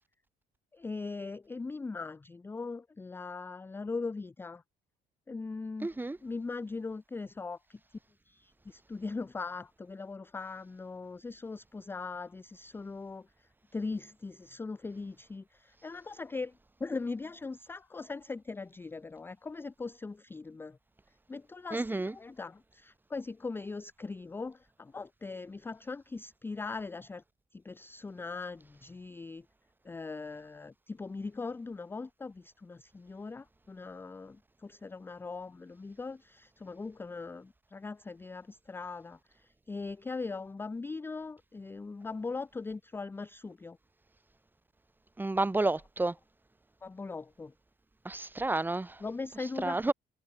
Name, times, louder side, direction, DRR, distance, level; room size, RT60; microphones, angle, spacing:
voice 1, 0.7-4.6 5.3-5.9 6.2-8.0 8.3-20.8 21.3-27.2 27.5-29.5 29.8-43.8 46.8-47.5 49.0-49.9, left 4 dB, 15° left, 0.4 m, -40 dB
voice 2, 5.8-6.2 21.7-22.1 45.2-46.2 48.0-49.0 49.6-49.9, right 2 dB, 10° right, 1.0 m, -30 dB
cardioid pair, 110°, 17 cm